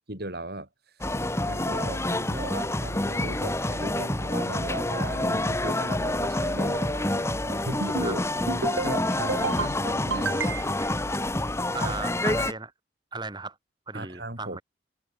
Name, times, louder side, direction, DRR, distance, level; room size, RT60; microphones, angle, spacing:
voice 1, 0.1-0.7 1.4-8.2 8.8-10.4 11.7-11.9 13.9-14.6, right 1 dB, 55° right, 5.6 m, -37 dB
sound 1, 1.0-12.5, left 1 dB, 15° left, 1.6 m, -28 dB
sound 2, 7.7-8.1 8.5-8.9 9.3-9.7 10.1-10.9, right 3 dB, 80° right, 1.6 m, -30 dB
voice 2, 11.7-12.7 13.1-13.6 13.9-14.6, right 3 dB, 25° right, 5.4 m, -36 dB
head